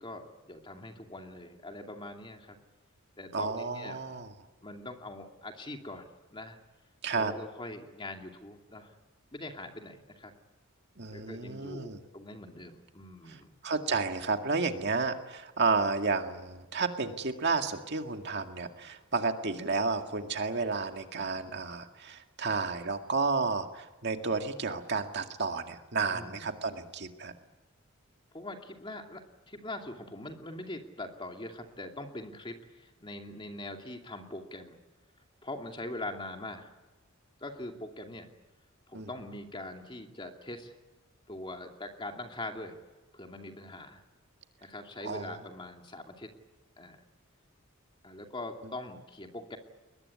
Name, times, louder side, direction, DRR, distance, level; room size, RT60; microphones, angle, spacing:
voice 1, 0.0-2.6 3.2-4.0 4.6-6.0 6.3-6.6 7.1-8.9 9.3-10.3 11.1-13.5 26.1-26.5 28.3-34.8 35.4-36.7 37.4-38.3 38.9-40.7 41.3-42.8 43.1-44.0 44.6-46.3 46.8-47.0 48.0-49.6, left 2 dB, 25° left, 3 dB, 2.6 m, -42 dB
voice 2, 3.3-4.3 7.0-7.3 11.0-12.0 13.3-13.4 13.6-27.3 38.9-39.1 45.0-45.4, right 4 dB, 50° right, 5 dB, 2.0 m, -31 dB
22.5 x 20.5 x 9.7 m, 1.1 s
head